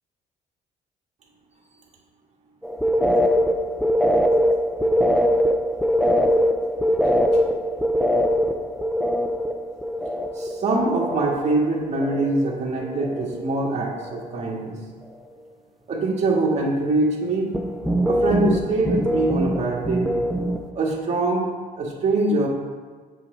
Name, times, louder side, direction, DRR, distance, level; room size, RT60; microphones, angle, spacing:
sound 1, 2.6-11.6 11.8-12.5 12.8-13.5 13.8-14.3 17.5-20.7, equal, ahead, 0.6 m, -22 dB
voice 1, 10.3-14.7 15.9-17.5 18.1-20.1 20.8-21.5 21.8-22.5, right 2 dB, 40° right, -3 dB, 1.9 m, -23 dB
7.6 x 6.0 x 3.9 m, 1.5 s
cardioid pair, 110°, 17 cm